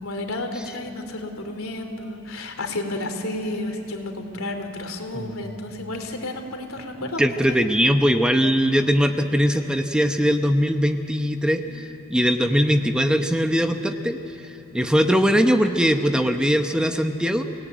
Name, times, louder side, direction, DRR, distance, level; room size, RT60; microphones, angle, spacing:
voice 1, 0.0-7.2 7.5-7.6 11.7-11.8, left 2 dB, 85° left, 5 dB, 3.2 m, -31 dB
voice 2, 7.2-14.2 14.4-17.4, equal, 5° right, 6 dB, 0.9 m, -21 dB
29.0 x 18.0 x 9.3 m, 2.9 s
head